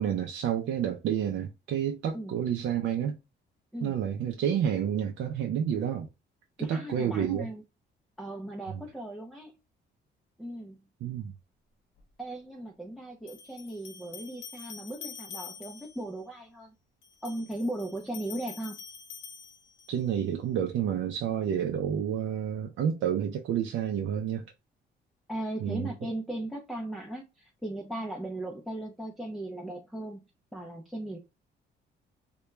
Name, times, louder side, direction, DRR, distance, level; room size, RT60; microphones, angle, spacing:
voice 1, 0.0-3.2 3.8-6.1 6.6-7.5 8.7-8.8 11.0-11.3 19.9-24.4 25.6-25.9, right 9 dB, 70° right, 0.4 m, -29 dB
voice 2, 6.6-7.6 8.2-9.6 10.4-10.9 12.2-16.7 17.2-18.8 25.3-30.2 30.5-31.2, right 1 dB, ahead, 0.4 m, -37 dB
sound 1, 12.0-12.1 13.3-16.1 17.0-20.1, left 7 dB, 90° left, 0.6 m, -46 dB
2.2 x 2.1 x 3.0 m
cardioid pair, 90°, 20 cm